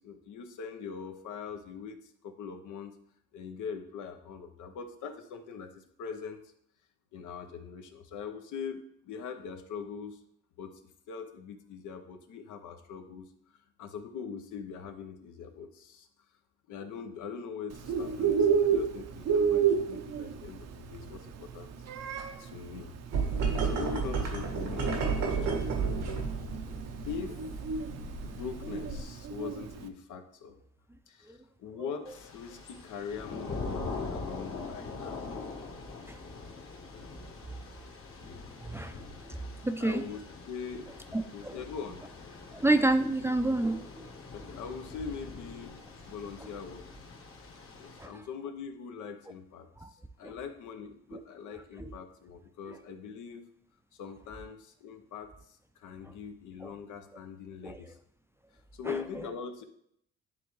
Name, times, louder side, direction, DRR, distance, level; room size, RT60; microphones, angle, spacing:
voice 1, 0.0-3.0 3.3-6.4 7.1-10.2 10.6-10.8 11.1-16.1 16.7-21.7 22.4-23.0 23.6-25.7 27.1-27.4 28.2-30.6 31.1-35.2 36.3-36.5 39.8-40.2 40.5-40.9 41.3-42.0 44.3-45.8 46.0-46.8 47.8-53.4 53.9-58.0 58.7-59.6, left 6 dB, 80° left, 6 dB, 0.8 m, -42 dB
Bird, 17.7-29.8, right 7 dB, 60° right, 0.6 m, -31 dB
sound 1, 23.1-29.0, right 5 dB, 90° right, 1.4 m, -32 dB
Thunder / Rain, 32.1-48.1, left 3 dB, 45° left, 1.3 m, -43 dB
voice 2, 38.6-39.0 39.3-40.0 41.1-41.6 42.5-44.1 48.0-48.2 49.8-49.9 50.2-50.3 51.1-51.2 51.8-51.9 56.0-56.1 56.6-56.7 57.6-57.8 58.8-59.0, right 2 dB, 10° right, 7 dB, 0.4 m, -29 dB
10.5 x 3.5 x 3.1 m, 0.69 s
cardioid pair, 90°, 30 cm